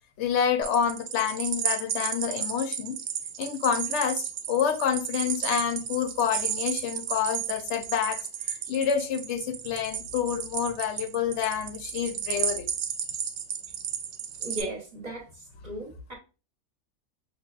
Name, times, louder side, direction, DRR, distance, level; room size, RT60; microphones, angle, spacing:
voice 1, 0.2-3.0 3.4-12.7, left 8 dB, 65° left, 0.8 m, -28 dB
sound 1, 0.6-14.6, right 8 dB, 90° right, 1.0 m, -33 dB
voice 2, 14.4-15.2 15.6-16.1, right 1 dB, 35° right, 0.8 m, -36 dB
5.5 x 2.2 x 2.3 m
omnidirectional pair, 1.4 m